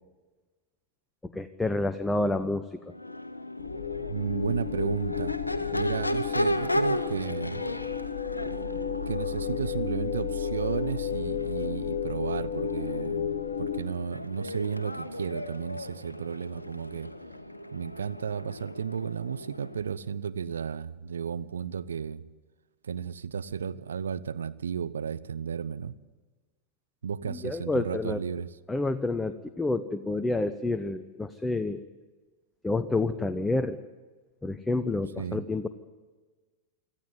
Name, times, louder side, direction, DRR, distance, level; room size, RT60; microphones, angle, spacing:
voice 1, 1.3-2.8 27.3-28.2 28.7-31.8 32.6-33.8 34.4-35.7, left 2 dB, 10° left, 11 dB, 0.8 m, -29 dB
Crowd / Race car auto racing / Accelerating revving vroom, 2.8-19.9, left 1 dB, 85° left, 1.1 m, -36 dB
sound 1, 3.6-13.8, left 8 dB, 60° left, 1.2 m, -33 dB
voice 2, 4.0-5.3 5.7-7.6 9.1-13.3 13.6-17.1 17.7-22.2 22.8-25.9 27.0-28.5 35.2-35.4, right 7 dB, 70° right, 14 dB, 0.8 m, -33 dB
25.5 x 14.0 x 9.6 m, 1.3 s
figure-of-eight pair, 90°, 0 cm